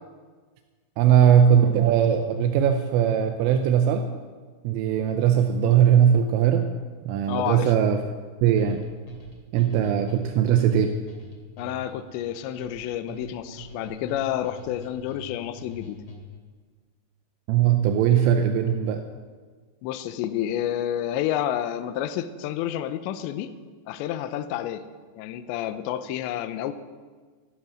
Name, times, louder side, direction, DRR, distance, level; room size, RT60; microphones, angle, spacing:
voice 1, 1.0-4.1 4.6-6.7 7.1-8.0 8.4-8.8 9.5-10.9 17.5-19.0, right 9 dB, 85° right, 5 dB, 3.3 m, -20 dB
voice 2, 7.3-7.7 11.6-16.0 19.8-23.5 23.9-24.8 25.2-26.7, left 11 dB, 85° left, 10 dB, 2.6 m, -29 dB
sound 1, 8.6-16.5, left 1 dB, 40° left, 2.2 m, -43 dB
15.0 x 11.5 x 6.0 m, 1.5 s
omnidirectional pair, 5.9 m